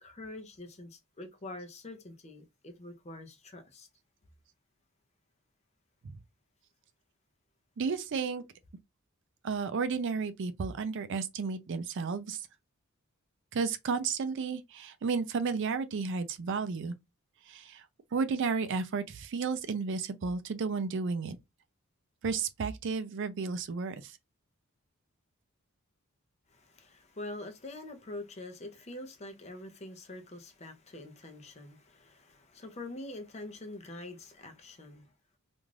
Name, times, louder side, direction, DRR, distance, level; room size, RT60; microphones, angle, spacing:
voice 1, 0.0-3.9 26.5-35.1, left 2 dB, 30° left, 0.6 m, -45 dB
voice 2, 7.8-8.4 9.4-12.5 13.5-16.9 17.5-17.9 18.1-21.4 22.2-24.2, right 5 dB, 55° right, 0.4 m, -32 dB
2.5 x 2.3 x 3.1 m
head